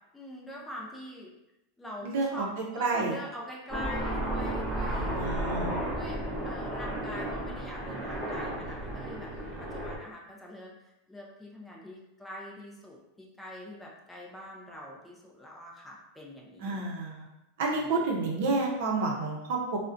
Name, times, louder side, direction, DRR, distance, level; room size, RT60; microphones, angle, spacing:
voice 1, 0.1-1.3 1.8-5.3 5.8-6.2 6.4-9.3 9.6-16.8 17.8-18.0, left 1 dB, 5° left, -3 dB, 0.4 m, -44 dB
voice 2, 2.0-2.5 2.7-3.2 4.9-5.7 16.6-17.3 17.6-19.8, right 3 dB, 65° right, -1 dB, 0.6 m, -30 dB
Aircraft, 3.7-10.0, right 1 dB, 20° right, 0.7 m, -33 dB
2.4 x 2.1 x 2.4 m, 0.89 s
supercardioid pair, 150°, 0 cm